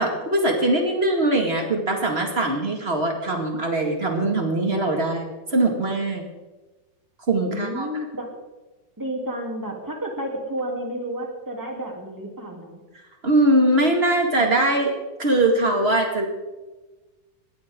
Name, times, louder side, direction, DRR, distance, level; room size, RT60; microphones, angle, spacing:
voice 1, 0.0-6.2 7.3-7.9 13.2-14.9 15.2-16.2, right 1 dB, 30° right, 2 dB, 1.1 m, -21 dB
voice 2, 7.4-8.2 9.0-12.8, right 1 dB, 5° right, 0 dB, 2.4 m, -31 dB
20.5 x 16.5 x 3.8 m, 1.2 s
omnidirectional pair, 4.5 m